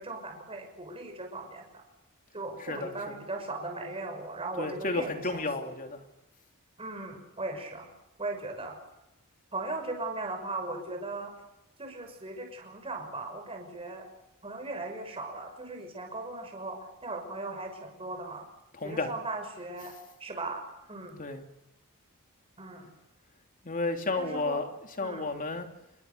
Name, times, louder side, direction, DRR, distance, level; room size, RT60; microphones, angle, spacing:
voice 1, 0.0-1.7 2.3-5.7 6.8-7.9 8.2-8.8 9.5-11.3 11.8-14.1 14.4-18.5 18.8-19.9 20.2-21.2 22.6-22.9 24.2-24.6 25.0-25.2, right 2 dB, 25° right, 3 dB, 5.8 m, -38 dB
voice 2, 2.6-3.2 4.6-6.0 18.7-19.1 21.2-21.4 23.6-24.7 25.0-25.7, left 3 dB, 40° left, 5 dB, 3.2 m, -32 dB
28.0 x 22.0 x 6.9 m, 0.89 s
head